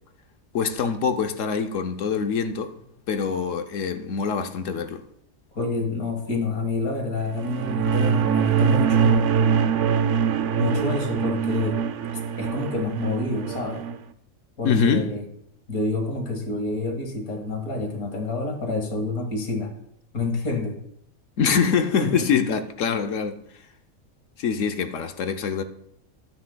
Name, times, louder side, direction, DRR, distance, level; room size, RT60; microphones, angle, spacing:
voice 1, 0.5-2.7 3.1-5.0 14.6-15.1 21.4-23.4 24.4-25.6, left 6 dB, 65° left, 1.0 m, -24 dB
voice 2, 5.5-9.3 10.6-11.8 12.4-13.9 14.6-15.2 15.7-19.7 20.1-20.8 22.0-22.3, left 3 dB, 85° left, 2.1 m, -28 dB
sound 1, 7.3-14.0, right 7 dB, 65° right, 0.9 m, -23 dB
14.0 x 9.7 x 2.2 m
omnidirectional pair, 1.5 m